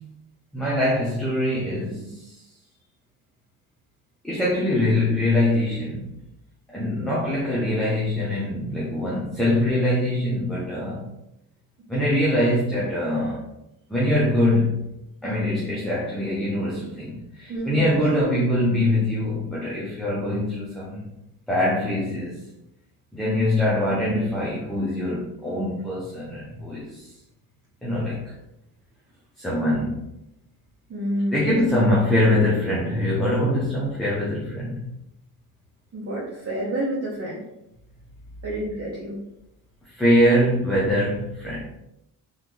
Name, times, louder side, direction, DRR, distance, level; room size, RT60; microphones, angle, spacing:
voice 1, 0.5-2.3 4.2-6.1 6.7-11.0 11.9-13.4 13.9-14.9 15.2-21.1 21.5-22.4 23.1-27.1 27.8-28.3 29.4-30.0 31.3-34.8 39.9-41.6, left 1 dB, ahead, -7 dB, 1.3 m, -23 dB
voice 2, 17.5-17.9 30.9-31.6 35.9-37.4 38.4-39.2, right 1 dB, 30° right, -6 dB, 1.2 m, -29 dB
3.7 x 3.6 x 3.3 m, 0.86 s
supercardioid pair, 75°, 46 cm